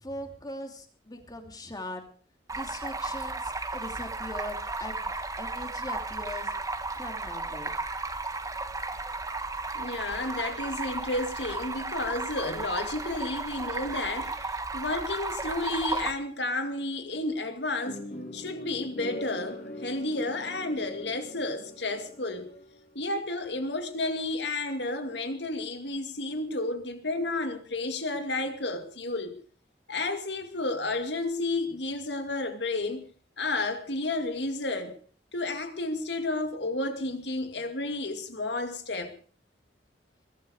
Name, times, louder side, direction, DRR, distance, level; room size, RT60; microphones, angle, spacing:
voice 1, 0.0-2.0 2.5-6.5 7.0-7.8, left 1 dB, 20° left, 2.8 m, -40 dB
Stream, 2.5-16.1, right 3 dB, 20° right, 1.4 m, -34 dB
voice 2, 9.7-18.0 18.3-22.5 22.9-29.3 29.9-33.0 33.4-35.0 35.3-39.1, left 2 dB, 75° left, 2.3 m, -32 dB
sound 1, 17.8-23.0, left 1 dB, 50° left, 5.0 m, -42 dB
21.5 x 12.5 x 5.0 m
head